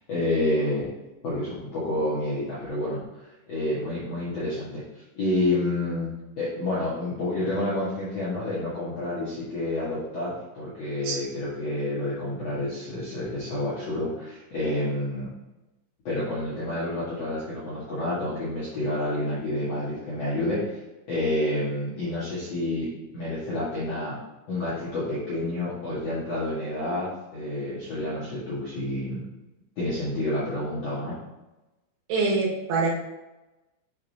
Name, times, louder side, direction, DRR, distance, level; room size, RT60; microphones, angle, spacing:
voice 1, 0.1-0.9 1.2-6.1 6.4-15.3 16.0-20.8 21.1-22.9 23.1-24.2 24.5-29.2 29.8-31.2, left 1 dB, 60° left, -10 dB, 1.7 m, -29 dB
voice 2, 32.1-32.9, right 3 dB, 75° right, -4 dB, 4.0 m, -24 dB
8.3 x 6.2 x 2.8 m, 1.0 s
omnidirectional pair, 5.6 m